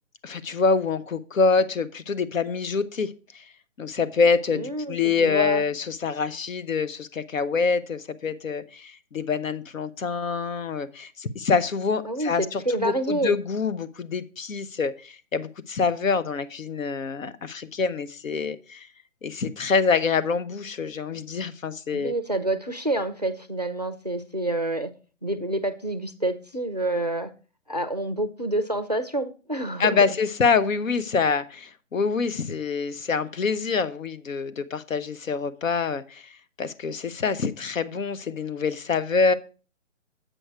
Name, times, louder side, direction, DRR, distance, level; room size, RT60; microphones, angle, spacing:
voice 1, 0.2-3.4 3.8-18.9 19.2-22.1 29.8-36.3 36.6-39.3, left 5 dB, 90° left, 1.0 m, -26 dB
voice 2, 4.5-5.6 12.1-13.4 21.9-24.9 25.2-27.3 27.7-30.0, right 1 dB, 35° right, 0.4 m, -28 dB
7.9 x 6.3 x 4.4 m
hypercardioid pair, 175°, 39 cm